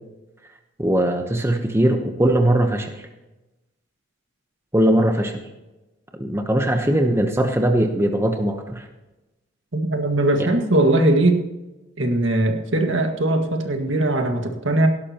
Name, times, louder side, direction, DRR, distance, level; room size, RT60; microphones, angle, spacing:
voice 1, 0.8-3.1 4.7-5.4 6.2-8.9, right 1 dB, 15° right, 4 dB, 0.9 m, -20 dB
voice 2, 9.7-11.4 12.0-14.9, right 1 dB, 70° right, 4 dB, 1.8 m, -20 dB
17.5 x 11.5 x 3.0 m, 1.0 s
head